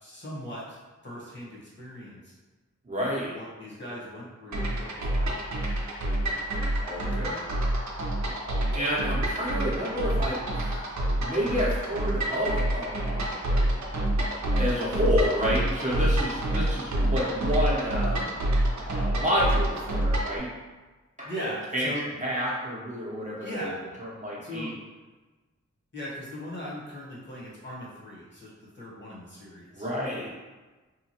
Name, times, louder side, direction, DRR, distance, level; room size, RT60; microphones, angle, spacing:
voice 1, 0.0-2.3 3.2-5.4 21.2-22.1 23.4-23.8 24.4-24.7 25.9-29.9, equal, 40° left, -6 dB, 1.1 m, -39 dB
voice 2, 2.9-3.3 6.8-7.4 8.7-10.9 11.2-13.3 14.5-18.3 18.9-20.5 21.2-21.4 21.7-21.9 22.2-23.7 24.0-24.7 29.7-30.3, equal, 25° right, -6 dB, 0.7 m, -29 dB
sound 1, 4.5-20.4, right 1 dB, 70° right, 0.5 m, -27 dB
2.9 x 2.2 x 2.8 m, 1.3 s
wide cardioid pair, 60°, 30 cm